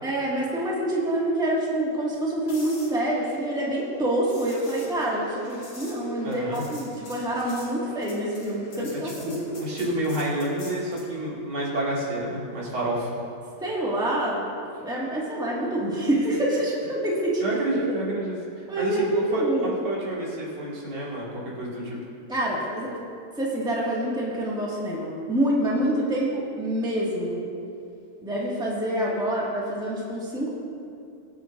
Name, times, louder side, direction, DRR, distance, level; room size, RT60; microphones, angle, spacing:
voice 1, 0.0-9.7 13.6-14.4 14.8-17.6 18.7-19.6 22.3-23.0 23.4-27.4 28.2-30.5, right 1 dB, ahead, -6 dB, 1.8 m, -26 dB
sound 1, 2.5-11.1 15.3-15.6, left 2 dB, 85° left, 3.2 m, -47 dB
voice 2, 6.2-6.6 8.7-13.2 17.4-18.4 18.8-22.0, right 1 dB, 85° right, -6 dB, 3.3 m, -29 dB
23.0 x 7.9 x 2.6 m, 2.5 s
omnidirectional pair, 2.2 m